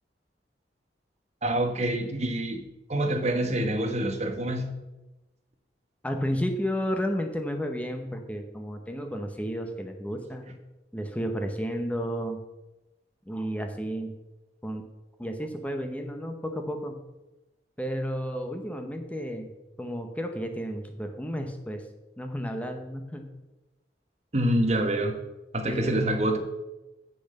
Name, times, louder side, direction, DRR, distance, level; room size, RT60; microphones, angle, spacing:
voice 1, 1.4-2.6 2.9-4.8 24.3-25.2 25.5-26.4, right 1 dB, 40° right, 4 dB, 1.3 m, -26 dB
voice 2, 6.0-10.6 10.9-12.4 13.2-14.1 14.6-14.9 15.2-17.0 17.8-19.5 19.8-21.9 22.2-23.4 25.7-26.0, equal, 10° left, 5 dB, 0.8 m, -32 dB
7.8 x 7.0 x 6.6 m, 1.0 s
head